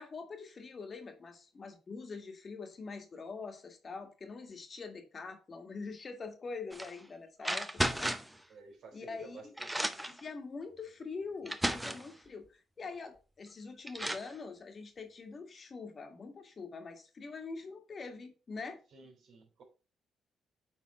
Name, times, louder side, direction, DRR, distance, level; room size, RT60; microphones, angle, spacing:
voice 1, 0.0-8.2 8.9-9.6 10.0-18.8, left 4 dB, 40° left, 1.6 m, -44 dB
sound 1, 6.7-6.9 7.4-8.4 9.2-9.3 9.6-10.2 11.0-11.1 11.5-12.1 13.4-13.5 13.9-14.3, right 1 dB, 10° right, 0.7 m, -34 dB
voice 2, 8.5-9.4 9.8-10.0 18.9-19.6, right 4 dB, 65° right, 3.6 m, -53 dB
8.6 x 3.9 x 4.3 m
cardioid pair, 90°, 0 cm